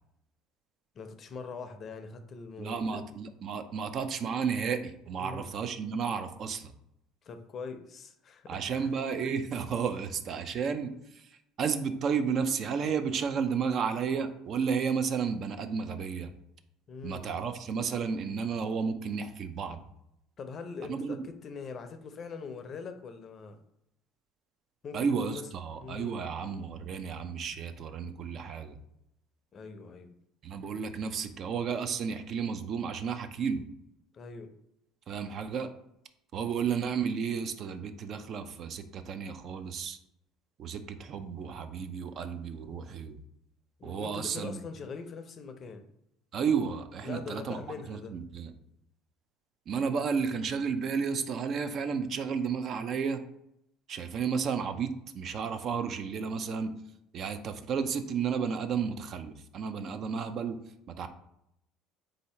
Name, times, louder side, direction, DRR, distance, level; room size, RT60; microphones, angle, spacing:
voice 1, 0.9-3.1 5.2-5.5 7.2-8.9 16.9-17.3 20.4-23.6 24.8-25.5 25.8-26.2 29.5-30.2 34.1-34.5 43.8-45.8 47.0-48.2, left 5 dB, 40° left, 8 dB, 0.5 m, -42 dB
voice 2, 2.6-6.7 8.5-16.3 17.0-19.8 20.9-21.2 24.9-28.8 30.4-33.6 35.1-35.7 36.3-40.0 40.6-43.2 43.8-44.6 46.3-47.6 47.9-48.5 49.7-53.2 53.9-56.7 57.1-60.6 61.0-61.1, right 6 dB, 50° right, 8 dB, 0.4 m, -32 dB
3.8 x 2.7 x 4.3 m, 0.79 s
supercardioid pair, 100°, 0 cm